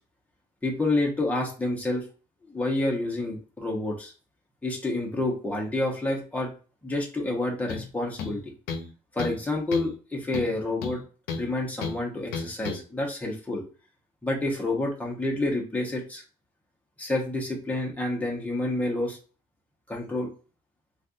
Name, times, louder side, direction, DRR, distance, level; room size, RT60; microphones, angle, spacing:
voice 1, 0.6-2.0 2.4-4.1 4.6-6.5 6.8-8.5 9.1-11.0 11.3-13.6 14.2-16.2 17.0-19.2 19.9-20.3, left 2 dB, 10° left, -1 dB, 1.1 m, -28 dB
sound 1, 7.7-7.9 8.2-8.9 9.2-9.4 9.7-10.0 10.3-11.5 11.8-12.0 12.3-12.8, left 5 dB, 90° left, 0.6 m, -33 dB
3.2 x 2.4 x 2.7 m, 0.36 s
cardioid pair, 110°, 15 cm